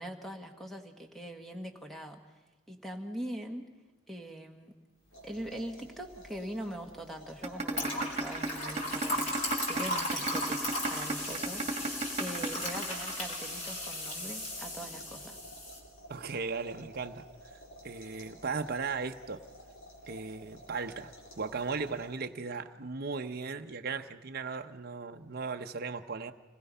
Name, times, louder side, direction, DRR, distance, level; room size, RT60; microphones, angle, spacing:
voice 1, 0.0-2.2 2.7-3.7 4.1-4.7 5.2-10.6 10.9-15.4, equal, ahead, 3 dB, 1.7 m, -42 dB
sound 1, 5.0-22.4, equal, 80° left, 4.9 m, -52 dB
sound 2, 7.4-13.4, right 3 dB, 35° right, 1.9 m, -33 dB
sound 3, 7.7-15.8, left 1 dB, 40° left, 4.2 m, -36 dB
voice 2, 16.1-17.3 17.8-19.4 20.1-21.1 21.4-26.3, right 4 dB, 50° right, 6 dB, 0.8 m, -37 dB
26.0 x 19.5 x 5.6 m, 1.2 s
head